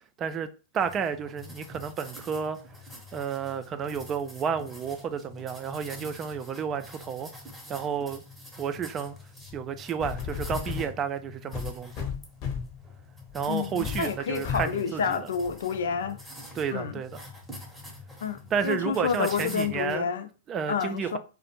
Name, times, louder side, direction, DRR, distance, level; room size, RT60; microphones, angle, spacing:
voice 1, 0.0-2.6 3.1-7.3 7.7-8.2 8.6-9.2 9.5-12.1 13.3-15.3 16.5-17.2 18.5-20.1 20.5-21.2, right 7 dB, 30° right, 0.3 m, -31 dB
sound 1, 0.8-20.0, left 1 dB, ahead, 0.8 m, -46 dB
sound 2, 9.5-9.6 10.0-10.9 11.5-12.8 13.3-13.4 13.8-14.0 14.4-14.8 15.5-15.6, left 7 dB, 40° left, 0.7 m, -33 dB
voice 2, 13.5-16.2 16.7-17.0 18.2-20.3 20.7-21.2, left 6 dB, 70° left, 0.4 m, -29 dB
2.4 x 2.1 x 2.9 m
hypercardioid pair, 105°, 0 cm